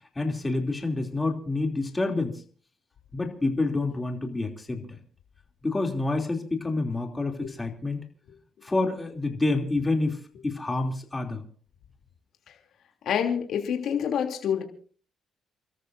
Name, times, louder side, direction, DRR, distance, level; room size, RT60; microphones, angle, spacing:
voice 1, 0.1-2.4 3.1-4.8 5.6-8.0 8.6-11.4, left 2 dB, 20° left, 3 dB, 3.1 m, -28 dB
voice 2, 13.0-14.6, left 8 dB, 70° left, 3 dB, 3.1 m, -27 dB
29.5 x 13.5 x 2.7 m, 0.42 s
cardioid pair, 90°, 0 cm